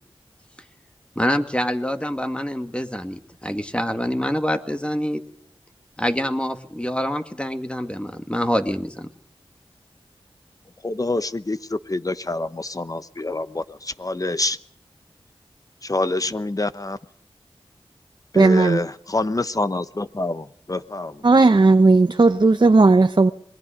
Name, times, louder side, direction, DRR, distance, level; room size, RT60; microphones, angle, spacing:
voice 1, 1.2-5.2 6.0-9.1, equal, 10° left, 7 dB, 2.1 m, -25 dB
voice 2, 10.8-14.6 15.8-17.0 18.3-21.1, left 2 dB, 35° left, 14 dB, 1.0 m, -26 dB
voice 3, 18.3-18.8 21.2-23.3, right 3 dB, 50° right, 9 dB, 0.9 m, -15 dB
26.5 x 21.0 x 5.1 m, 0.62 s
cardioid pair, 45°, 10 cm